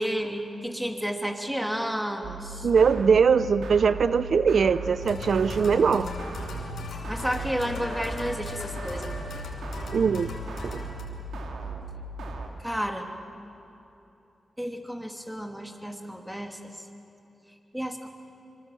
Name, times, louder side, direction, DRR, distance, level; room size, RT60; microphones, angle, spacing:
voice 1, 0.0-2.7 7.1-9.1 12.6-13.1 14.6-16.6 17.7-18.1, equal, 5° right, 4 dB, 2.9 m, -31 dB
sound 1, 2.2-12.5, right 2 dB, 85° right, 2.1 m, -37 dB
voice 2, 2.6-6.1 9.9-10.3 10.6-10.7, right 6 dB, 70° right, 14 dB, 0.5 m, -21 dB
sound 2, 5.0-11.0, left 3 dB, 85° left, 3.6 m, -38 dB
25.0 x 24.5 x 7.5 m, 3.0 s
cardioid pair, 50°, 0 cm